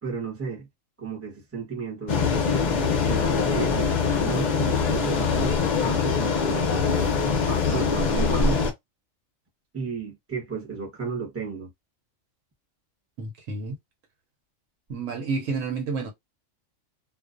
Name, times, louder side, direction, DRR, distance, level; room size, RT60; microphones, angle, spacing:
voice 1, 0.0-0.7 1.0-2.3 3.1-8.6 9.7-11.7, right 5 dB, 15° right, 0.7 m, -33 dB
sound 1, 2.1-8.7, left 5 dB, 55° left, 0.5 m, -23 dB
voice 2, 13.2-13.8 14.9-16.1, right 4 dB, 80° right, 1.1 m, -30 dB
2.4 x 2.1 x 2.4 m
omnidirectional pair, 1.3 m